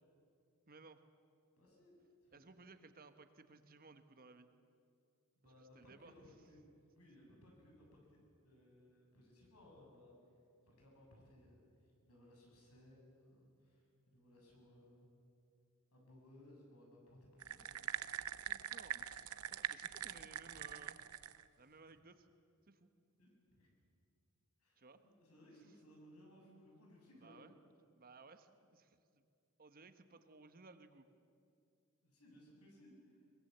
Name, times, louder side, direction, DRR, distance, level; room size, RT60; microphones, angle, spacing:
voice 1, 0.7-1.0 2.3-4.5 5.4-6.1 18.5-21.0 21.6-22.3 22.7-22.9 24.8-25.0 27.1-27.6 27.9-29.2 29.6-31.0, right 3 dB, 40° right, 9 dB, 1.2 m, -60 dB
voice 2, 1.6-1.9 2.2-2.4 5.4-6.6 6.9-10.1 10.7-15.1 15.9-17.8 20.0-20.6 23.2-23.7 24.6-27.5 32.0-33.2, left 1 dB, 85° left, 0 dB, 7.3 m, -63 dB
sound 1, 17.4-21.4, right 10 dB, 80° right, 0.7 m, -43 dB
22.5 x 21.0 x 8.0 m, 2.4 s
head